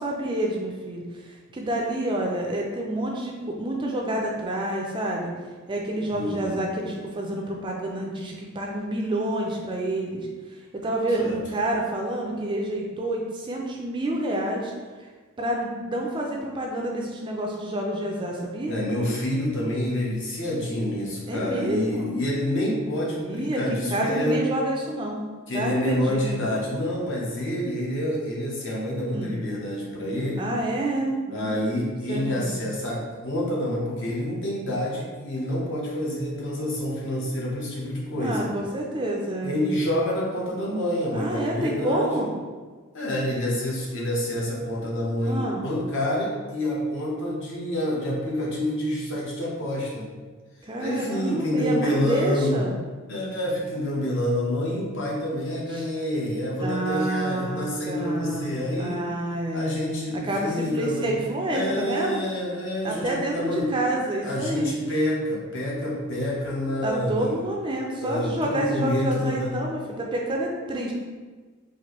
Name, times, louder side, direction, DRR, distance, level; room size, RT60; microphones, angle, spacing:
voice 1, 0.0-5.3 5.7-14.7 15.4-18.8 21.3-22.1 23.2-25.2 25.5-26.4 29.1-29.3 30.4-31.6 32.1-32.6 38.2-39.6 41.1-42.3 45.3-45.6 50.6-52.7 55.7-55.9 56.6-62.2 62.8-64.7 66.8-70.9, right 1 dB, 20° right, -1 dB, 0.3 m, -28 dB
voice 2, 6.1-6.6 11.2-11.3 18.7-24.4 25.5-30.5 31.3-38.5 39.4-42.3 42.9-50.1 50.8-52.6 53.1-59.0 59.5-61.1 61.5-63.7 64.2-67.4 68.0-69.5, left 1 dB, 55° left, -4 dB, 0.9 m, -27 dB
4.3 x 2.6 x 3.0 m, 1.4 s
head